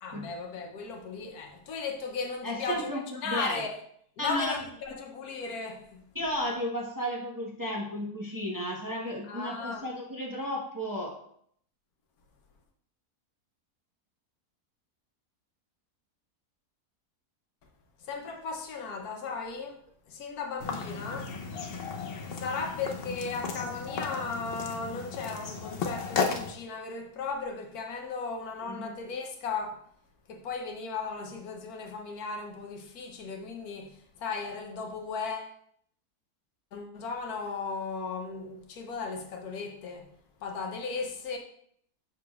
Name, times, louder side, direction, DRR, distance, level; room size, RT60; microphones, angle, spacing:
voice 1, 0.0-2.9 3.2-3.8 4.2-6.0 9.3-9.9 18.0-19.8 20.1-21.3 22.3-29.8 30.3-35.5 36.7-40.1 40.4-41.4, left 4 dB, 75° left, 1.2 m, -36 dB
voice 2, 2.4-3.6 4.2-4.5 6.1-11.1 28.7-28.9, equal, 15° right, 0.8 m, -33 dB
sound 1, 20.6-26.5, left 5 dB, 55° left, 0.6 m, -34 dB
6.7 x 5.9 x 2.4 m
omnidirectional pair, 1.7 m